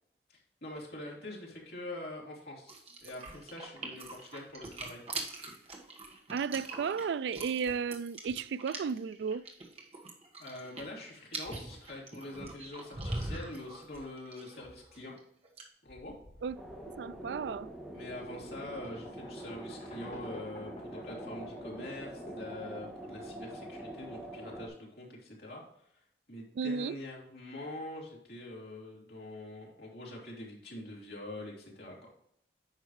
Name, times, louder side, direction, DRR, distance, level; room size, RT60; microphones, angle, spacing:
voice 1, 0.3-2.7 3.0-5.0 10.4-15.2 15.8-16.1 17.9-25.6 26.3-32.0, left 1 dB, 60° left, 2.9 m, -44 dB
sound 1, 2.7-15.2 15.4-15.6, right 2 dB, 35° right, 1.4 m, -42 dB
voice 2, 6.3-9.4 16.4-16.6 17.0-17.7 26.5-27.0, right 6 dB, 80° right, 0.3 m, -34 dB
sound 2, 15.9-23.0, left 1 dB, 40° left, 1.3 m, -51 dB
sound 3, 16.5-24.7, right 1 dB, 5° right, 2.4 m, -45 dB
9.5 x 5.6 x 3.1 m
head